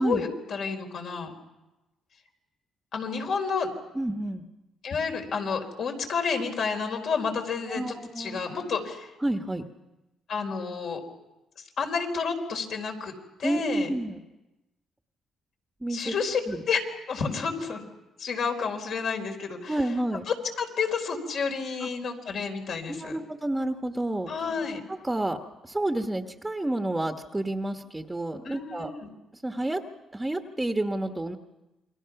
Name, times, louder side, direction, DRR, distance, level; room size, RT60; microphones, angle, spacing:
voice 1, 0.0-1.3 2.9-3.7 4.8-7.8 8.2-9.1 10.3-11.0 11.8-13.1 13.4-13.9 15.9-16.4 16.7-16.8 17.1-17.8 18.2-19.8 20.3-23.2 24.3-24.8 28.4-29.1, left 5 dB, 65° left, 3 dB, 4.2 m, -30 dB
voice 2, 3.9-4.4 7.7-8.4 9.2-9.6 13.4-14.2 15.8-16.1 16.5-16.6 19.7-20.3 21.8-21.9 22.9-24.3 24.9-25.4 25.6-28.9 29.3-29.8 30.1-31.4, right 1 dB, 15° right, 4 dB, 1.4 m, -29 dB
29.0 x 22.5 x 5.9 m, 1.0 s
cardioid pair, 90°, 0 cm